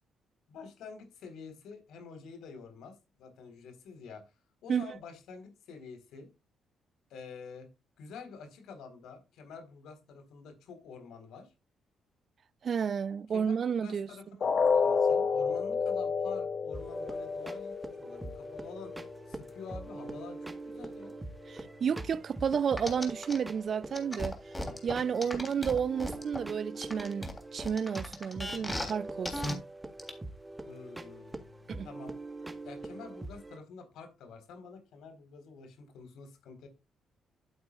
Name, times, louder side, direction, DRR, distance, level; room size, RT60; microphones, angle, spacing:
voice 1, 0.5-4.2 4.6-6.3 7.1-7.7 8.0-11.5 13.3-19.0 19.3-21.2 25.2-25.5 30.6-32.1 32.6-36.7, left 5 dB, 80° left, 4.1 m, -48 dB
voice 2, 12.6-14.1 21.5-24.3 24.8-29.6 31.7-31.9, right 7 dB, 50° right, 0.5 m, -31 dB
sound 1, 14.4-20.4 20.8-21.0 21.4-21.5, left 5 dB, 50° left, 1.5 m, -31 dB
sound 2, 16.7-33.6, right 2 dB, 15° right, 1.4 m, -44 dB
sound 3, 22.8-23.4 23.9-26.4 26.8-28.9 29.2-29.5 30.0-30.1, left 1 dB, 15° left, 3.2 m, -36 dB
12.0 x 8.8 x 2.4 m
cardioid pair, 90°, 0 cm